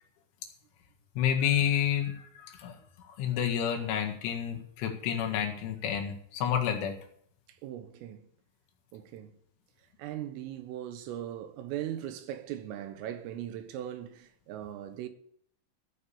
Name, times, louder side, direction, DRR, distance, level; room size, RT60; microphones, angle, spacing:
voice 1, 1.2-2.7 3.2-6.9, left 9 dB, 75° left, 4.2 m, -29 dB
voice 2, 7.5-8.2 8.9-9.3 10.0-15.1, right 11 dB, 85° right, 3.8 m, -39 dB
14.5 x 7.4 x 8.6 m
omnidirectional pair, 5.7 m